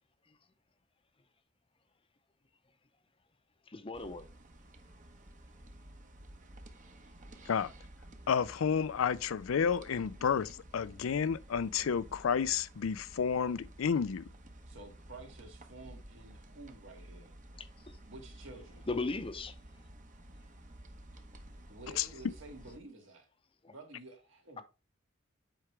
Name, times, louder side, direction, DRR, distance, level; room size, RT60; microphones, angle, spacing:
voice 1, 3.7-4.3 17.6-18.0 18.9-19.6 23.6-23.7, left 3 dB, 25° left, 0.6 m, -37 dB
sound 1, 3.9-22.8, right 1 dB, 40° right, 1.0 m, -53 dB
voice 2, 8.3-14.2 22.0-22.1, left 6 dB, 90° left, 0.4 m, -31 dB
voice 3, 14.7-17.4 18.0-18.9 21.7-23.3 23.7-24.6, right 2 dB, 70° right, 2.0 m, -51 dB
7.8 x 4.8 x 3.3 m
head